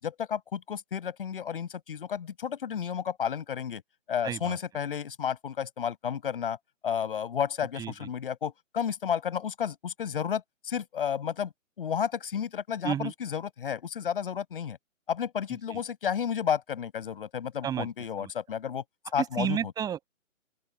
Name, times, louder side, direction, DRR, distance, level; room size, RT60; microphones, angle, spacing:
voice 1, 0.0-3.8 4.1-6.6 6.8-11.5 11.8-14.8 15.1-18.8 19.1-19.6, left 8 dB, 40° left, 6.8 m, -32 dB
voice 2, 4.2-4.6 7.8-7.9 12.8-13.1 15.7-15.8 17.6-17.9 18.2-18.3 19.2-20.1, right 9 dB, 10° right, 6.5 m, -31 dB
open air
figure-of-eight pair, 145°, 40 cm